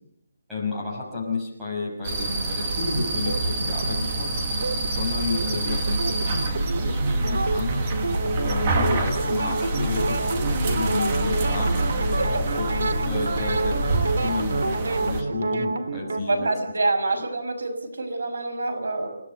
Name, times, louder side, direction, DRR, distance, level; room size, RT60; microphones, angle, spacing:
voice 1, 0.5-4.4 4.9-7.9 8.4-11.9 12.5-16.5, left 4 dB, 5° right, -6 dB, 5.9 m, -32 dB
sound 1, 2.0-15.2, right 2 dB, 20° right, 1.7 m, -27 dB
sound 2, 2.9-16.2, right 3 dB, 60° right, 2.4 m, -29 dB
sound 3, 6.9-14.7, left 4 dB, 20° left, 3.3 m, -33 dB
voice 2, 16.3-19.1, right 2 dB, 85° right, 9 dB, 6.1 m, -26 dB
29.0 x 18.5 x 8.1 m, 0.74 s
hypercardioid pair, 180°, 0 cm